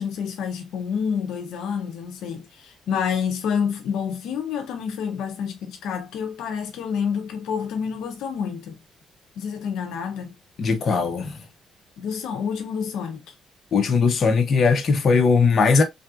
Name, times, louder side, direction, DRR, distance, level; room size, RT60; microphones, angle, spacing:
voice 1, 0.0-8.8 9.4-10.3 12.0-13.3, left 7 dB, 85° left, 0.7 m, -28 dB
voice 2, 10.6-11.4 13.7-15.8, left 4 dB, 50° left, 0.8 m, -19 dB
3.4 x 2.6 x 2.4 m
cardioid pair, 90°, 0 cm